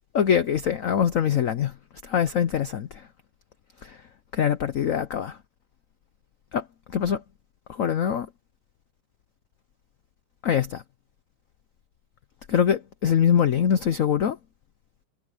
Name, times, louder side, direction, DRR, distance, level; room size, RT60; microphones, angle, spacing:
voice 1, 0.1-1.7 2.0-2.9 3.8-4.0 4.3-5.4 6.5-6.6 6.9-7.2 7.7-8.3 10.4-10.8 12.5-14.4, left 8 dB, 85° left, 0.7 m, -23 dB
omnidirectional pair, 2.4 m